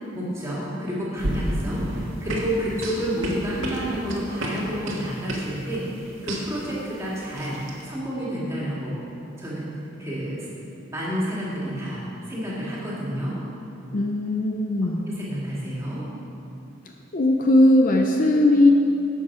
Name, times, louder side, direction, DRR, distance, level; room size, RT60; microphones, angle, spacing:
voice 1, 0.1-7.6 7.8-9.0 9.4-9.6 10.0-10.5 10.9-12.0 12.3-13.3 14.8-16.0, equal, 15° right, -7 dB, 2.5 m, -29 dB
sound 1, 1.2-7.8, right 1 dB, 75° right, 1.7 m, -31 dB
voice 2, 13.9-15.1 17.1-18.7, left 1 dB, 40° left, 3 dB, 0.5 m, -18 dB
12.0 x 8.1 x 4.9 m, 2.8 s
head